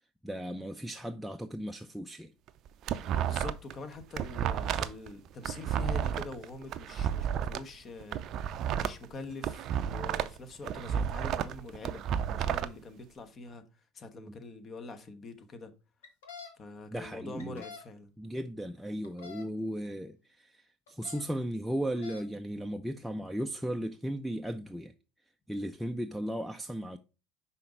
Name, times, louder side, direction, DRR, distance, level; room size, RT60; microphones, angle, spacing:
voice 1, 0.2-2.3 4.7-4.9 14.2-14.3 16.9-17.6 18.2-24.9 25.5-27.0, equal, ahead, 0.5 m, -36 dB
sound 1, 2.5-3.7 4.0-7.6 8.0-10.4 10.6-12.7, right 9 dB, 50° right, 0.5 m, -32 dB
voice 2, 3.0-12.0 12.3-13.6 13.9-15.7 16.6-18.1, left 3 dB, 35° left, 1.1 m, -44 dB
sound 2, 16.0-16.5 17.4-17.8 19.0-19.4 20.9-21.2 21.8-22.2, left 6 dB, 80° left, 1.4 m, -46 dB
5.7 x 4.2 x 4.9 m
hypercardioid pair, 75°, 0 cm